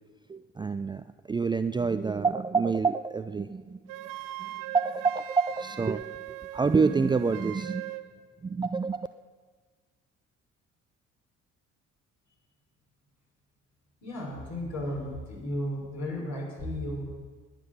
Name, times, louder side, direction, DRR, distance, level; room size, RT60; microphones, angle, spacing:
voice 1, 0.3-3.8 4.4-6.1 6.5-8.0 8.4-9.1, right 4 dB, 15° right, 11 dB, 0.4 m, -27 dB
Wind instrument woodwind instrument, 3.9-8.1, right 14 dB, 60° right, 0.9 m, -40 dB
voice 2, 14.0-17.1, left 1 dB, 50° left, -2 dB, 5.7 m, -34 dB
20.5 x 7.6 x 6.7 m, 1.4 s
figure-of-eight pair, 50°, 37 cm